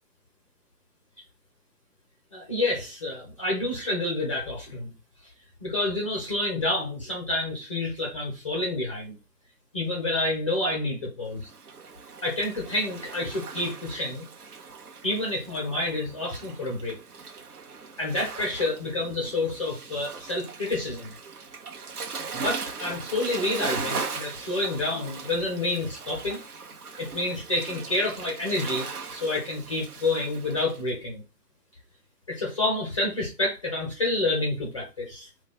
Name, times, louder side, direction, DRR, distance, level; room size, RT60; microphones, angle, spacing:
voice 1, 2.3-4.9 5.6-9.2 9.7-11.5 12.2-14.3 15.0-17.0 18.0-21.1 22.3-26.4 27.0-31.2 32.3-35.3, left 2 dB, 20° left, -1 dB, 0.5 m, -28 dB
Waves surf, 11.4-30.8, right 5 dB, 65° right, 0.9 m, -39 dB
3.9 x 2.2 x 4.1 m, 0.28 s
figure-of-eight pair, 130°, 49 cm